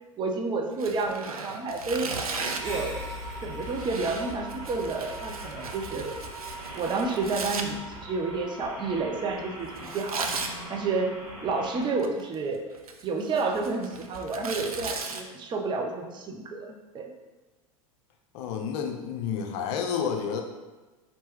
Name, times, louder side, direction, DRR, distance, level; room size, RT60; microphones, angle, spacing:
voice 1, 0.2-2.1 2.6-3.0 3.4-6.1 6.8-10.3 10.7-12.6 13.0-17.1, right 3 dB, 25° right, 3 dB, 0.6 m, -30 dB
Tearing, 0.7-2.8 3.6-7.6 9.8-10.5 11.8-12.3 12.7-15.2, right 4 dB, 90° right, 0.4 m, -36 dB
sound 1, 2.4-11.9, right 2 dB, 70° right, 1.2 m, -41 dB
sound 2, 2.6-7.5, left 2 dB, 50° right, 1.4 m, -43 dB
voice 2, 18.3-20.4, left 7 dB, 50° left, 3 dB, 0.6 m, -30 dB
4.4 x 3.0 x 3.0 m, 1.2 s
hypercardioid pair, 90°, 18 cm